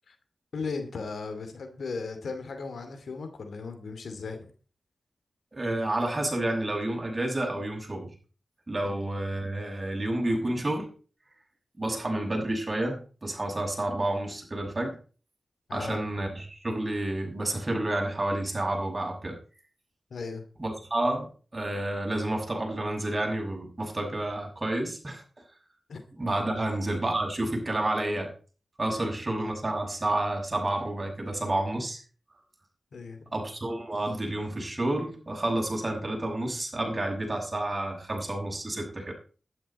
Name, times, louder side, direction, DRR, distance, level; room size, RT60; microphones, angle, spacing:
voice 1, 0.5-4.5 8.8-8.9 15.7-16.0 20.1-20.4 25.9-26.0 26.5-26.7 32.9-33.2, left 4 dB, 85° left, 2.5 m, -36 dB
voice 2, 5.5-8.1 8.7-10.9 11.8-15.0 15.7-19.4 20.6-25.2 26.2-28.3 28.8-32.0 33.3-39.1, right 1 dB, 35° right, 6.2 m, -30 dB
11.5 x 11.0 x 4.3 m
cardioid pair, 50°, 0 cm